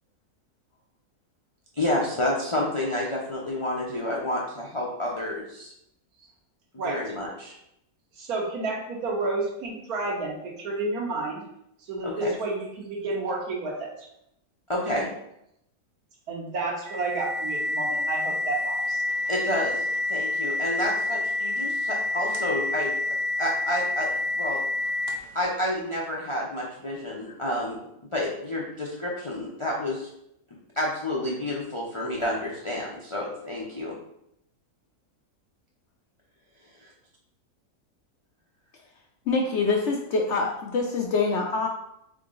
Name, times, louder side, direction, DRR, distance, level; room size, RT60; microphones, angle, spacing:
voice 1, 1.8-5.7 6.8-7.5 12.0-12.3 14.7-15.1 19.3-22.9 23.4-24.1 24.4-24.6 25.3-27.8 28.1-30.1 30.7-33.9 36.8-36.9, left 1 dB, 45° left, -4 dB, 0.3 m, -29 dB
voice 2, 8.1-11.4 11.9-14.1 16.3-19.0, right 3 dB, 75° right, -1 dB, 1.5 m, -30 dB
sound 1, 16.9-25.4, left 2 dB, 55° right, 0.8 m, -28 dB
voice 3, 39.3-41.7, left 4 dB, 65° left, 1 dB, 0.7 m, -25 dB
3.8 x 3.7 x 3.7 m, 0.79 s
omnidirectional pair, 1.6 m